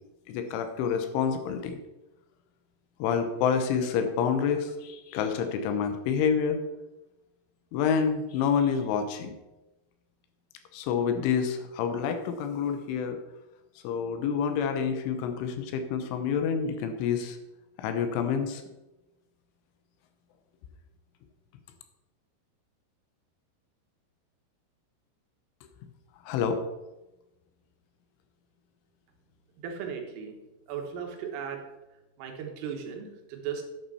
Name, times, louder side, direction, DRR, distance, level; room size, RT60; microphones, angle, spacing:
voice 1, 0.3-1.8 3.0-6.6 7.7-9.3 10.7-13.2 13.8-17.4 17.8-18.6 26.3-26.6, left 6 dB, 80° left, 7 dB, 3.3 m, -28 dB
voice 2, 29.6-30.4 30.7-31.6 32.2-33.6, right 7 dB, 85° right, 3 dB, 3.9 m, -36 dB
10.0 x 8.9 x 4.2 m, 1.0 s
omnidirectional pair, 5.6 m